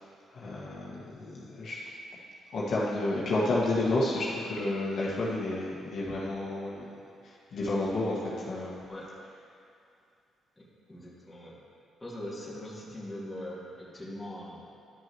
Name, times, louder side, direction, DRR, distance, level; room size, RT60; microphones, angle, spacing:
voice 1, 0.3-1.8 2.5-6.8 7.5-8.1 8.5-8.8, left 2 dB, 65° left, -6 dB, 1.6 m, -30 dB
voice 2, 10.6-11.6 12.0-14.7, left 1 dB, 15° left, -6 dB, 2.1 m, -41 dB
12.0 x 6.2 x 3.1 m, 2.4 s
cardioid pair, 90°, 0 cm